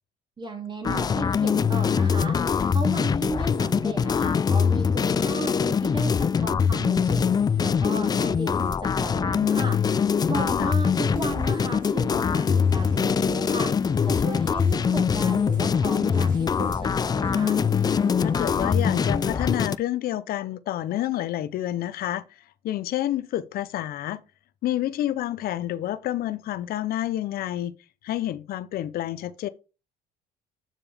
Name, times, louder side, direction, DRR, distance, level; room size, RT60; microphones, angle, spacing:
voice 1, 0.4-2.4 2.7-7.2 7.6-9.8 10.3-13.7 14.0-17.6, right 2 dB, 25° right, 2.8 m, -35 dB
sound 1, 0.8-19.8, left 6 dB, 25° left, 0.3 m, -23 dB
sound 2, 11.1-19.4, right 5 dB, 55° right, 1.7 m, -45 dB
voice 2, 18.2-22.2 22.6-24.2 24.6-27.8 28.0-29.5, left 13 dB, 60° left, 0.6 m, -29 dB
7.2 x 7.0 x 3.4 m
cardioid pair, 110°, 17 cm